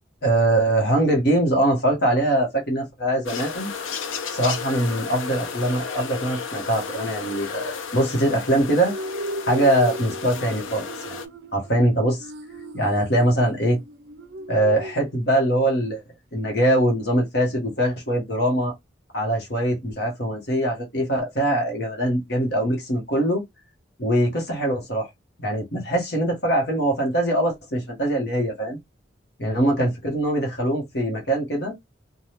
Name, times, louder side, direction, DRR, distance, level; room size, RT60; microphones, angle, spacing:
voice 1, 0.2-3.7 4.3-8.9 9.5-11.2 11.5-12.2 12.7-13.8 14.5-16.0 16.3-18.7 19.1-23.4 24.0-25.1 25.4-28.8 29.4-31.7, right 1 dB, 55° left, 1.0 m, -22 dB
sound 1, 3.2-11.3, left 6 dB, 90° left, 0.6 m, -33 dB
sound 2, 8.8-15.7, right 1 dB, 60° right, 0.4 m, -36 dB
3.3 x 2.2 x 2.8 m
head